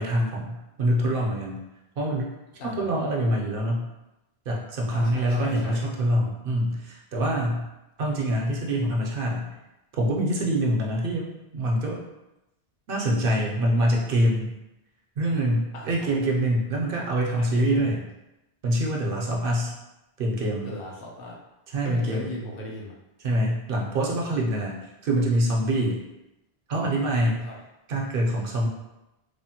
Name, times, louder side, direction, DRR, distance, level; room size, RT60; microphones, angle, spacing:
voice 1, 0.0-1.6 2.0-2.3 2.6-3.9 4.5-7.7 8.0-9.5 10.0-12.0 12.9-14.5 15.2-18.0 18.6-19.8 20.2-20.7 21.7-22.3 23.2-24.8 25.0-26.0 26.7-27.5 27.9-28.7, right 1 dB, 65° right, -1 dB, 0.7 m, -25 dB
voice 2, 4.9-5.9 15.7-16.1 17.4-18.0 20.6-21.4 21.8-22.9 27.4-27.6, left 1 dB, 65° left, -2 dB, 0.8 m, -38 dB
3.3 x 2.0 x 2.7 m, 0.95 s
omnidirectional pair, 1.1 m